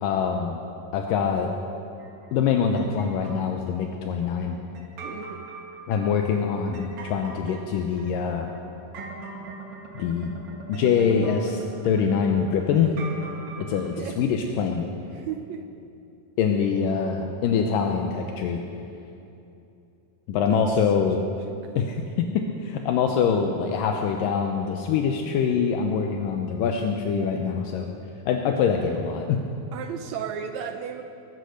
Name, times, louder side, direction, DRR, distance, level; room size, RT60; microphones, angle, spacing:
voice 1, 0.0-0.6 0.9-1.5 2.3-4.6 5.9-8.5 10.0-10.3 10.7-13.0 13.6-14.9 16.4-18.6 20.3-21.2 21.8-27.9 28.3-29.4, left 6 dB, 80° left, 3 dB, 2.4 m, -24 dB
sound 1, 2.0-3.6 4.7-13.9, right 4 dB, 45° right, 2.2 m, -41 dB
voice 2, 5.0-5.4 14.0-14.2 15.1-15.6 20.5-20.6 29.7-31.0, right 8 dB, 85° right, 6 dB, 1.6 m, -34 dB
22.0 x 9.9 x 6.5 m, 2.7 s
omnidirectional pair, 4.0 m